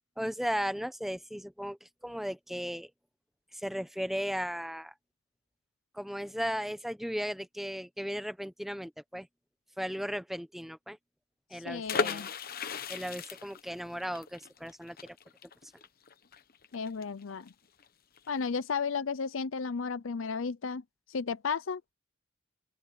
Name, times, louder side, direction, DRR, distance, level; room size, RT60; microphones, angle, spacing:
voice 1, 0.2-2.9 3.5-4.9 5.9-9.3 9.8-11.0 11.5-12.3 12.9-15.2, equal, ahead, 1.0 m, -36 dB
voice 2, 11.5-12.3 16.7-17.5 18.3-20.8 21.1-21.8, left 5 dB, 75° left, 0.6 m, -33 dB
sound 1, 11.9-17.5 17.8-17.9 18.2-18.5, left 5 dB, 45° left, 1.0 m, -36 dB
open air
head